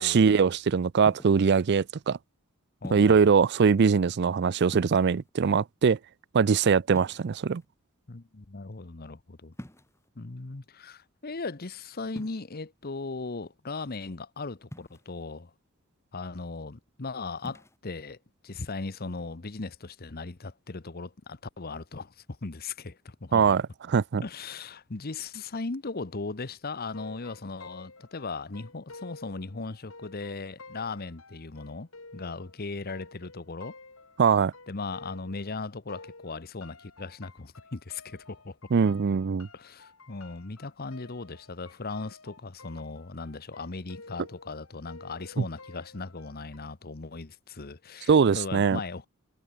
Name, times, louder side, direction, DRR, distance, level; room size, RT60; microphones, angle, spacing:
voice 1, 0.0-2.2 2.9-6.0 6.3-7.6 23.3-23.6 23.9-24.2 34.2-34.5 38.7-39.5 48.1-48.8, right 6 dB, 50° right, 0.4 m, -22 dB
sound 1, 1.1-1.5 2.8-3.3 4.7-5.3 6.9-7.7 9.5-10.1 12.1-12.4 14.7-15.2 17.4-17.8, equal, 15° left, 2.6 m, -44 dB
voice 2, 2.8-3.3 8.1-9.5 10.2-15.5 16.1-18.2 18.4-23.6 24.2-33.8 34.7-38.6 39.5-49.1, left 3 dB, 45° left, 1.0 m, -38 dB
sound 2, 26.9-35.6 35.9-46.6, left 3 dB, 70° left, 6.2 m, -51 dB
head